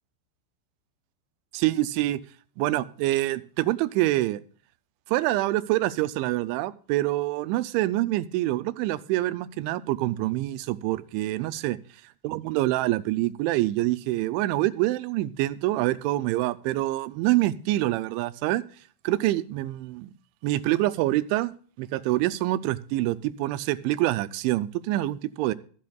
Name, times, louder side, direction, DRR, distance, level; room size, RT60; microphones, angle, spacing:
voice 1, 1.5-2.2 2.6-4.4 5.1-11.8 12.2-18.6 19.0-20.1 20.4-25.5, right 16 dB, 80° right, 15 dB, 2.9 m, -26 dB
25.0 x 8.4 x 2.3 m, 0.44 s
omnidirectional pair, 5.6 m